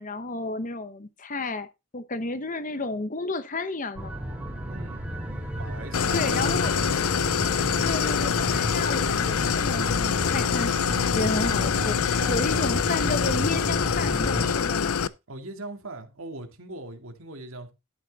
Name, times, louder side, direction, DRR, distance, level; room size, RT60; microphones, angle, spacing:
voice 1, 0.0-1.7 1.9-4.1 6.1-6.7 7.8-10.7 11.1-15.1, left 2 dB, 35° left, 0.9 m, -31 dB
sound 1, 4.0-14.5, right 1 dB, 5° right, 2.6 m, -33 dB
voice 2, 4.7-5.0 5.5-6.9 15.3-17.7, right 2 dB, 70° right, 2.2 m, -40 dB
Idling, 5.9-15.1, left 7 dB, 80° left, 0.6 m, -25 dB
12.0 x 6.6 x 4.0 m
head